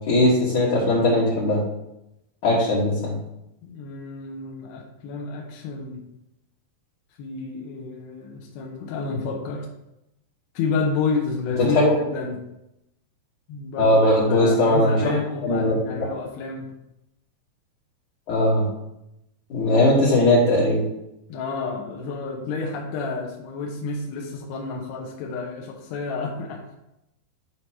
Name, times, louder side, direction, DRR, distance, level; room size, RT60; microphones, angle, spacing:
voice 1, 0.1-1.6 2.4-3.2 11.6-11.9 13.8-15.0 15.4-16.0 18.3-18.6 19.5-20.8, left 1 dB, 60° left, -7 dB, 2.3 m, -19 dB
voice 2, 3.6-6.0 7.2-9.7 10.5-12.4 13.5-16.7 21.3-26.6, left 4 dB, 75° left, -1 dB, 2.4 m, -30 dB
11.0 x 5.0 x 3.0 m, 0.87 s
omnidirectional pair, 5.4 m